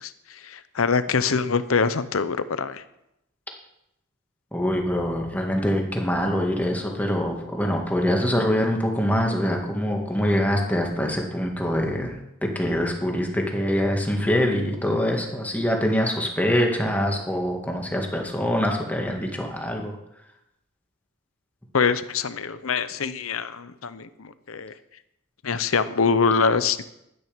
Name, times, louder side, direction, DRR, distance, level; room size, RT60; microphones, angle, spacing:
voice 1, 0.0-2.8 21.7-24.7 25.4-26.9, left 5 dB, 90° left, 13 dB, 0.8 m, -24 dB
voice 2, 4.5-20.0, equal, 10° left, 1 dB, 1.9 m, -24 dB
12.5 x 9.4 x 5.2 m, 0.82 s
head